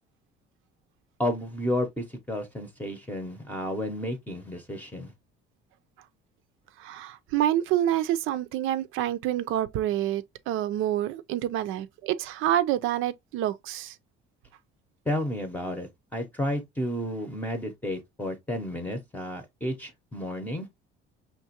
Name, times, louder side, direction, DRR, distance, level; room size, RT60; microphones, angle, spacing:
voice 1, 1.2-5.1 15.1-20.8, left 1 dB, 10° left, 0.8 m, -32 dB
voice 2, 6.8-14.0, right 12 dB, 70° right, 0.6 m, -27 dB
5.8 x 3.0 x 2.8 m
cardioid pair, 145°, 21 cm